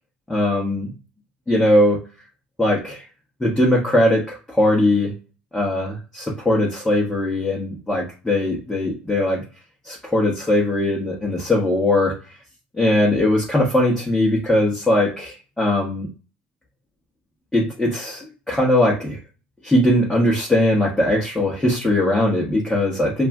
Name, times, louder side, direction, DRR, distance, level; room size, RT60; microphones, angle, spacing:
voice 1, 0.3-0.9 1.5-2.0 2.6-3.0 3.4-5.1 5.5-9.4 9.8-12.1 12.8-16.1 17.5-19.2 19.6-23.3, left 1 dB, 10° left, -4 dB, 0.9 m, -20 dB
2.4 x 2.1 x 3.5 m, 0.35 s
hypercardioid pair, 80°, 5 cm